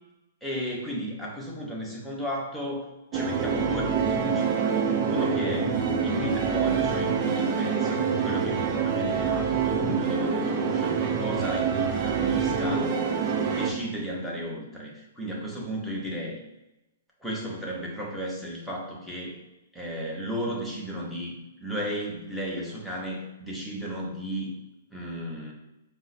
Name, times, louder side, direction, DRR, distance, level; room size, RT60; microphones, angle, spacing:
voice 1, 0.4-2.8 3.1-5.8 6.0-13.0 13.5-16.4 17.2-19.4 19.7-24.5 24.9-25.5, equal, ahead, -4 dB, 0.8 m, -34 dB
sound 1, 3.1-13.7, right 6 dB, 35° right, 0.5 m, -26 dB
4.4 x 2.0 x 4.1 m, 0.96 s
hypercardioid pair, 145°, 0 cm